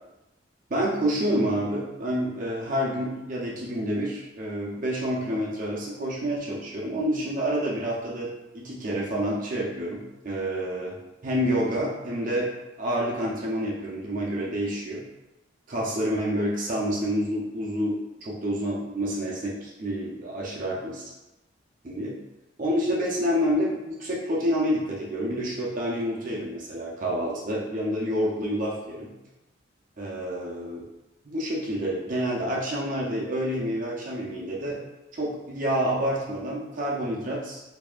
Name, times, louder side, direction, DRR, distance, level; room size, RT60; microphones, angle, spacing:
voice 1, 0.7-11.0 11.2-12.5 12.8-15.0 15.7-21.0 21.8-22.2 22.6-29.1 30.0-30.8 31.3-34.8 35.1-37.6, equal, 45° right, -4 dB, 0.7 m, -28 dB
4.6 x 2.7 x 2.4 m, 0.98 s
head